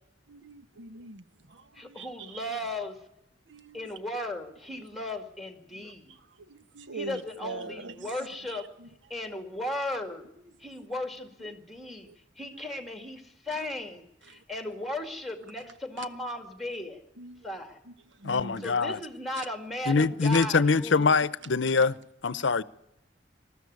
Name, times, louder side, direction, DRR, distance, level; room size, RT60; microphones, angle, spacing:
voice 1, 0.3-2.6 3.5-3.9 5.7-8.1 8.5-8.9 12.1-12.2 13.5-13.7 14.3-14.4 16.0-16.1 17.2-17.5 17.9-18.8 20.3-20.5 21.2-21.3 21.8-21.9, right 3 dB, 75° right, 1.1 m, -44 dB
voice 2, 1.7-3.0 3.7-6.2 6.9-8.7 9.1-10.3 10.6-12.1 12.4-17.0 17.4-17.8 18.6-21.2, left 1 dB, ahead, 2.2 m, -36 dB
voice 3, 18.2-19.0 19.9-21.9 22.2-22.6, left 4 dB, 75° left, 0.7 m, -24 dB
20.0 x 13.5 x 9.5 m
head